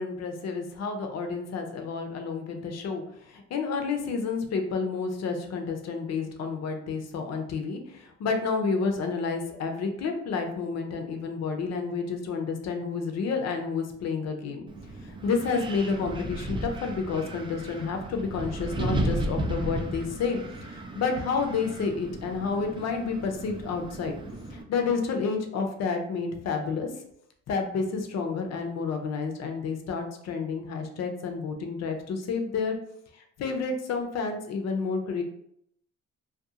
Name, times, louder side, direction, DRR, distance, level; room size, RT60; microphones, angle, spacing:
voice 1, 0.0-14.7 15.0-24.1 24.5-26.9 27.5-32.7 33.1-35.2, left 5 dB, 60° left, 4 dB, 0.6 m, -30 dB
Wind, 14.7-24.6, right 1 dB, 15° right, 0.3 m, -34 dB
2.4 x 2.2 x 2.7 m, 0.72 s
cardioid pair, 90°, 30 cm